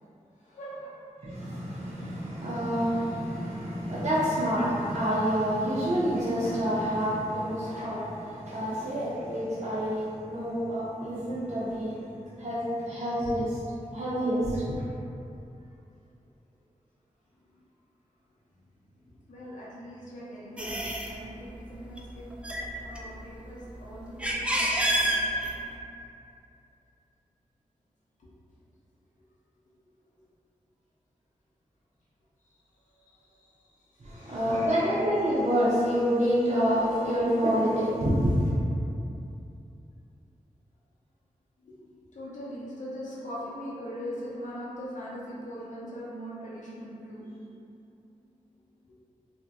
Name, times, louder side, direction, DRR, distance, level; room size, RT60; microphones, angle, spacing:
voice 1, 0.4-1.0 11.5-11.6 15.0-15.1 15.6-15.7 19.3-22.3 22.8-25.0 32.4-32.5 33.0-33.5 34.1-34.7 41.6-41.8 42.1-47.5 48.9-49.0, equal, 60° left, -8 dB, 0.7 m, -41 dB
voice 2, 1.2-12.0 12.4-13.6 13.9-14.8 34.0-38.5, equal, 55° right, -9 dB, 0.6 m, -27 dB
sound 1, 20.6-21.1 21.8-22.0 22.3-23.4 23.9-25.7, right 1 dB, 10° right, 0.4 m, -28 dB
2.6 x 2.1 x 3.4 m, 2.7 s
cardioid pair, 50°, 14 cm